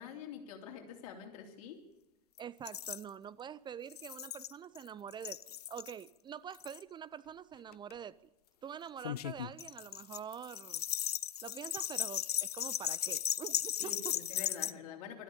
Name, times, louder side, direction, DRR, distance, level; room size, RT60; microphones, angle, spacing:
voice 1, 0.0-1.9 13.8-15.2, left 7 dB, 60° left, 3.2 m, -46 dB
sound 1, 2.4-2.5 2.7-3.0 3.9-4.8 5.1-5.9 6.5-6.8 7.7-7.9 9.0-14.7, left 11 dB, 80° left, 0.6 m, -37 dB
voice 2, 2.4-5.4 5.7-8.1 8.6-10.8 11.4-14.1, right 8 dB, 25° right, 0.5 m, -46 dB
13.0 x 12.5 x 8.4 m
hypercardioid pair, 95°, 19 cm